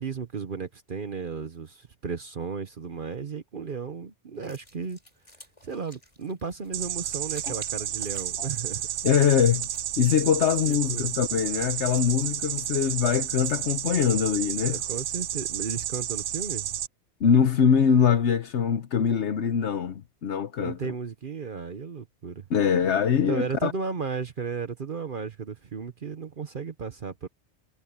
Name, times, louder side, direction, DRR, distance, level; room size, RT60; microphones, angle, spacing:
voice 1, 0.0-5.0 5.6-8.9 10.7-11.1 14.7-16.8 20.6-22.5 23.3-27.3, right 5 dB, 50° right, 1.1 m, -34 dB
sound 1, 4.4-13.8, equal, 25° left, 6.2 m, -56 dB
sound 2, 6.7-16.9, right 11 dB, 90° right, 1.0 m, -31 dB
voice 2, 9.0-9.7 10.0-14.8 17.2-20.9 22.5-23.7, left 7 dB, 75° left, 1.2 m, -23 dB
omnidirectional pair, 1.2 m